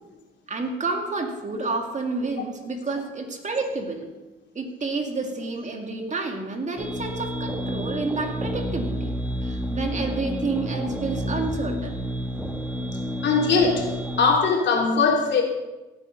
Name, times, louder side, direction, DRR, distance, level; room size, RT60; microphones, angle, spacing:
voice 1, 0.5-4.1 4.5-9.1 9.4-11.9, right 3 dB, 35° right, 3 dB, 2.4 m, -29 dB
sound 1, 6.8-14.4, equal, 5° right, 1.3 m, -30 dB
voice 2, 13.2-13.9 14.2-15.4, left 4 dB, 65° left, 0 dB, 3.2 m, -20 dB
17.0 x 8.6 x 5.5 m, 1.1 s
cardioid pair, 90°, 20 cm